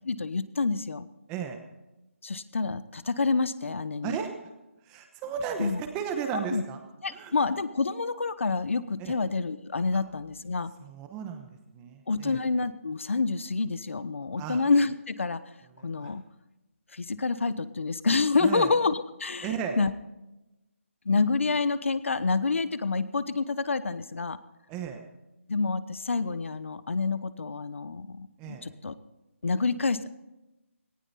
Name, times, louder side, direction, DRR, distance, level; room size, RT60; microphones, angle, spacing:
voice 1, 0.0-1.1 2.2-4.2 5.6-5.8 6.5-6.6 7.0-10.7 12.1-15.4 15.8-16.2 16.9-19.5 19.8-19.9 21.0-24.4 25.5-28.9 29.4-30.1, left 4 dB, 65° left, 15 dB, 1.0 m, -28 dB
voice 2, 1.3-1.6 4.0-4.3 4.8-6.8 7.1-7.5 9.0-9.1 9.9-10.0 10.8-12.4 14.4-14.6 15.8-16.1 18.4-18.7 19.4-19.8 24.7-25.0 28.4-28.6, right 7 dB, 10° right, 6 dB, 1.0 m, -35 dB
18.5 x 15.5 x 4.2 m, 0.98 s
hypercardioid pair, 175°, 7 cm